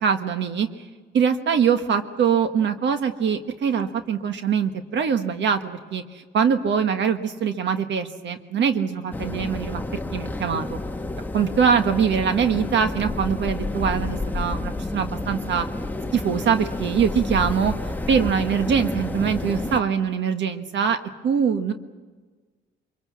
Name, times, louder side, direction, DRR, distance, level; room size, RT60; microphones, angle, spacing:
voice 1, 0.0-0.7 1.1-9.8 10.1-10.8 11.3-15.7 16.1-17.7 18.1-21.0 21.2-21.7, right 7 dB, 65° right, 8 dB, 1.5 m, -23 dB
sound 1, 9.1-19.8, left 2 dB, 10° left, 1.0 m, -30 dB
23.5 x 22.5 x 7.4 m, 1.4 s
cardioid pair, 90°, 20 cm